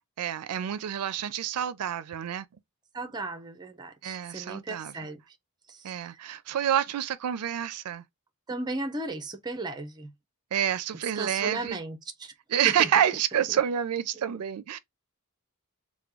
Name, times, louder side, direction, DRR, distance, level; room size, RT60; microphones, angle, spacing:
voice 1, 0.2-2.5 4.0-4.9 5.8-8.0 10.5-11.8 12.5-14.8, right 9 dB, 85° right, 0.4 m, -28 dB
voice 2, 2.9-5.2 5.7-6.2 8.5-10.1 11.1-12.3 12.6-12.9, right 2 dB, 20° right, 0.6 m, -36 dB
3.5 x 2.2 x 3.0 m
head